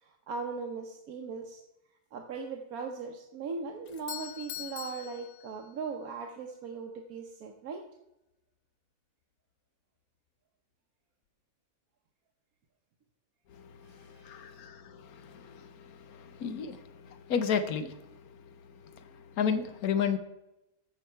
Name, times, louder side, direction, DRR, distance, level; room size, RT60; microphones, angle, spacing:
voice 1, 0.0-1.6 2.1-7.8 13.8-14.5, right 4 dB, 85° right, 3 dB, 1.4 m, -39 dB
Doorbell, 3.9-6.0, left 12 dB, 65° left, 0.7 m, -43 dB
voice 2, 13.5-18.5 18.8-20.2, left 7 dB, 85° left, 10 dB, 1.3 m, -34 dB
14.0 x 5.1 x 4.5 m, 0.90 s
omnidirectional pair, 1.5 m